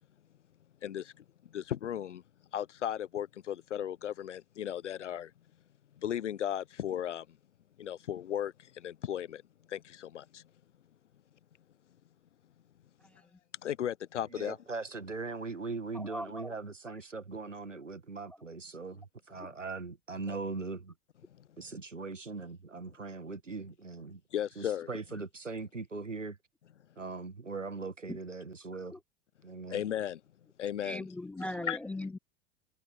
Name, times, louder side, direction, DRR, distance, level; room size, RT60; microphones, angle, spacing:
voice 1, 0.8-1.2 1.5-2.2 2.5-5.3 6.0-7.3 7.8-9.4 9.7-10.4 13.6-14.6 24.3-24.9 29.7-30.2 30.6-31.1 31.6-31.8, left 10 dB, 70° left, 0.8 m, -35 dB
voice 2, 14.3-20.9 21.6-24.2 24.6-26.4 27.0-28.9 29.4-29.8, right 4 dB, 85° right, 1.9 m, -40 dB
voice 3, 15.9-16.6 16.9-17.0 20.3-20.4 28.1-28.2 28.9-29.0 30.8-32.2, left 1 dB, 5° left, 0.3 m, -39 dB
figure-of-eight pair, 85°, 37 cm